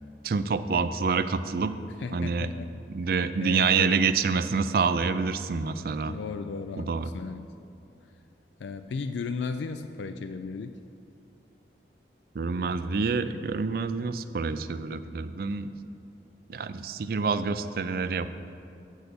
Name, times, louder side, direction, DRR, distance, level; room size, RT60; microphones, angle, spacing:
voice 1, 0.2-1.7 2.1-2.5 2.9-6.1 6.8-7.1 12.3-15.7 16.5-18.3, right 5 dB, 55° right, 11 dB, 0.4 m, -27 dB
voice 2, 2.0-2.7 3.4-4.0 6.0-7.5 8.6-10.8, left 4 dB, 85° left, 9 dB, 0.4 m, -35 dB
7.9 x 6.3 x 6.9 m, 2.6 s
head